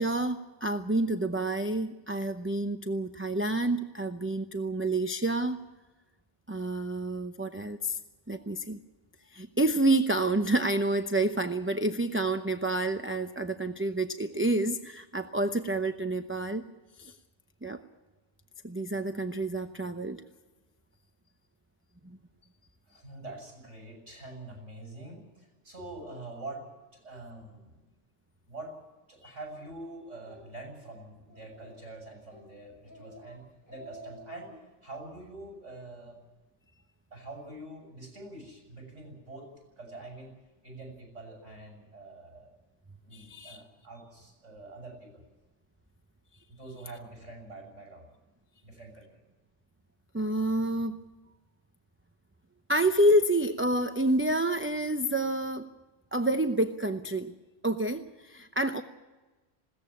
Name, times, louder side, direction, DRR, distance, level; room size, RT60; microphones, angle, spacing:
voice 1, 0.0-5.6 6.5-8.0 8.3-8.8 9.3-16.6 17.0-17.2 17.6-17.8 18.6-20.2 22.0-22.2 29.2-29.3 43.1-43.6 50.1-51.0 52.7-55.7 56.1-57.3 57.6-58.8, right 1 dB, 15° right, 7 dB, 0.6 m, -28 dB
voice 2, 22.9-26.6 26.9-27.8 28.5-28.7 29.1-33.4 33.7-34.6 34.8-36.2 37.1-39.5 39.8-40.3 40.6-42.5 43.0-45.2 46.5-48.1 48.6-49.2, right 2 dB, 70° right, 3 dB, 7.5 m, -45 dB
Speech, 29.5-29.7 30.1-30.4 30.8-30.9 31.3-31.9 32.3-32.5 32.8-33.2 33.5-34.6, right 1 dB, 45° left, 6.4 m, -50 dB
21.0 x 17.0 x 8.6 m, 1.2 s
omnidirectional pair, 1.2 m